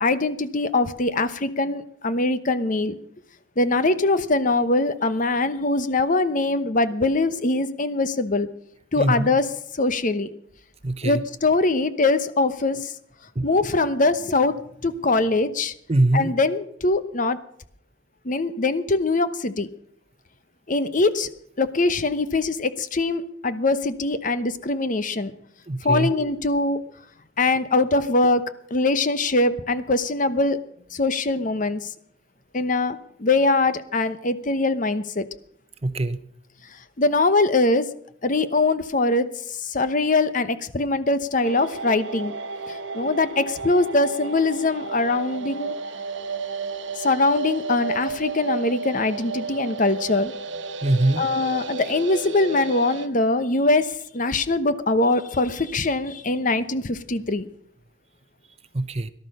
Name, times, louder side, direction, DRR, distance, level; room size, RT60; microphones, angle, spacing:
voice 1, 0.0-3.0 3.6-8.5 8.9-9.5 9.7-10.3 11.0-12.9 13.4-14.6 14.8-15.7 16.1-17.4 18.2-19.7 20.7-21.3 21.6-25.3 25.8-26.8 27.4-28.4 28.7-30.6 30.9-31.9 32.5-35.2 36.7-37.9 38.2-42.3 42.7-45.7 47.0-50.3 51.2-57.5, left 2 dB, 40° left, 12 dB, 0.9 m, -22 dB
voice 2, 9.0-9.4 10.8-11.2 13.3-13.5 15.9-16.3 25.7-26.1 35.8-36.2 50.8-51.2 58.7-59.1, right 1 dB, 30° right, 13 dB, 0.8 m, -22 dB
sound 1, 41.4-53.1, right 4 dB, 70° right, 1.1 m, -33 dB
18.0 x 12.0 x 6.6 m, 0.70 s
head